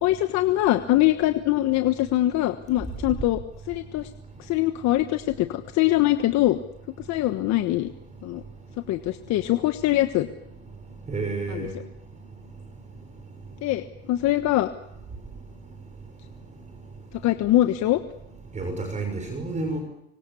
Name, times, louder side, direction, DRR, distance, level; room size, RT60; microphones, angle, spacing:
voice 1, 0.0-3.4 3.7-4.1 4.4-6.6 7.1-7.9 8.2-8.4 8.9-10.3 11.5-11.7 13.6-14.7 17.2-18.0, left 15 dB, 55° left, 8 dB, 1.4 m, -23 dB
voice 2, 11.1-11.7 18.5-19.8, right 3 dB, 20° right, 5 dB, 6.2 m, -30 dB
26.0 x 24.0 x 7.1 m, 0.83 s
supercardioid pair, 110°, 33 cm